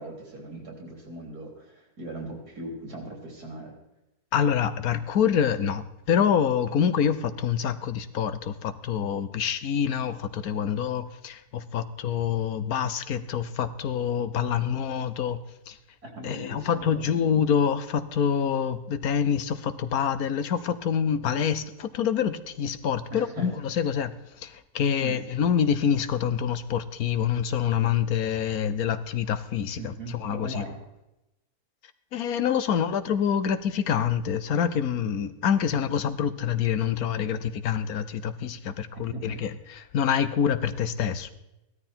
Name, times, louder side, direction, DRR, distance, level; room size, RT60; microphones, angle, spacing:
voice 1, 0.0-3.7 16.0-17.0 23.1-23.5 25.0-25.2 29.8-30.8 39.1-39.4, right 1 dB, 80° right, 2 dB, 4.0 m, -39 dB
voice 2, 4.3-15.4 15.7-15.8 16.2-24.1 24.4-30.6 32.1-39.5 39.9-41.3, left 8 dB, 75° left, 12 dB, 1.3 m, -26 dB
16.5 x 13.0 x 4.4 m, 0.92 s
omnidirectional pair, 1.6 m